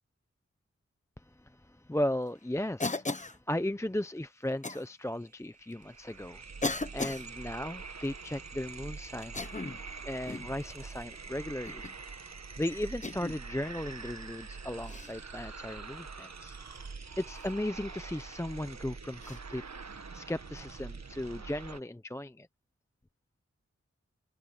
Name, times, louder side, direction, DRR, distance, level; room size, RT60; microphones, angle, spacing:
voice 1, 1.4-6.4 6.7-9.5 10.0-11.9 12.6-16.6 17.2-19.6 19.9-22.5, left 1 dB, 10° left, 0.7 m, -36 dB
Cough, 2.8-3.4 4.6-4.8 5.7-5.8 6.6-7.3 9.2-9.8 10.3-10.5 11.6-12.0 13.0-13.4 14.9-15.1 17.3-17.5 19.2-19.4, left 3 dB, 25° left, 1.0 m, -36 dB
sound 1, 4.8-4.9 5.1-21.8, right 4 dB, 65° right, 1.6 m, -45 dB
open air
cardioid pair, 45°, 29 cm